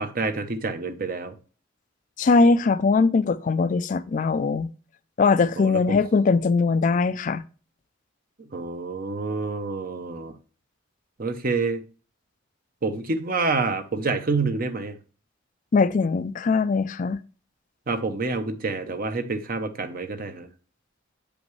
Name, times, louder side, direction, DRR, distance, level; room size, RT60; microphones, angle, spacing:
voice 1, 0.0-1.3 5.6-6.0 8.5-10.4 11.2-11.8 12.8-15.0 17.9-20.5, right 3 dB, 45° right, 0.8 m, -27 dB
voice 2, 2.2-4.7 5.2-7.4 15.7-17.2, left 4 dB, 40° left, 0.3 m, -21 dB
8.3 x 5.2 x 3.1 m
head